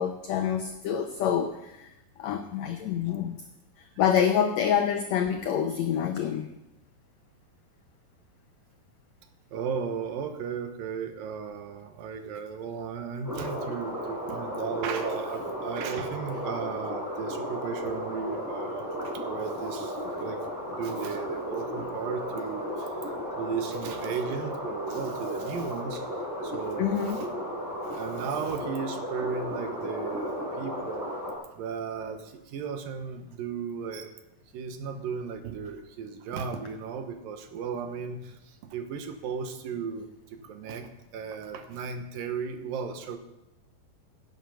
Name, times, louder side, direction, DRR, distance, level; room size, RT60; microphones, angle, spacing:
voice 1, 0.0-1.9 2.2-3.4 4.0-6.5 26.8-27.2, left 8 dB, 90° left, 7 dB, 1.5 m, -27 dB
voice 2, 9.5-20.4 20.7-22.9 23.4-26.1 26.4-27.3 27.8-31.1 31.6-34.1 34.5-43.2, right 6 dB, 75° right, 7 dB, 2.8 m, -35 dB
sound 1, 13.2-31.4, equal, 5° right, 4.2 m, -34 dB
16.0 x 8.4 x 5.7 m, 0.93 s
omnidirectional pair, 4.2 m